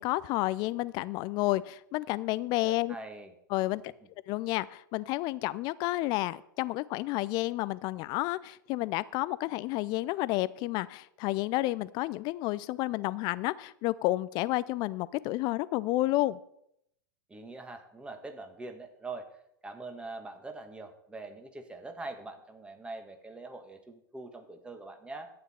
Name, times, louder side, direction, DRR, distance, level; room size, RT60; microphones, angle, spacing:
voice 1, 0.0-3.0 3.5-3.9 4.3-16.4, left 18 dB, 40° left, 19 dB, 0.5 m, -30 dB
voice 2, 2.6-3.3 17.3-19.3 19.6-25.3, right 3 dB, 10° right, 6 dB, 1.6 m, -43 dB
12.0 x 9.5 x 4.4 m, 0.75 s
figure-of-eight pair, 95°, 11 cm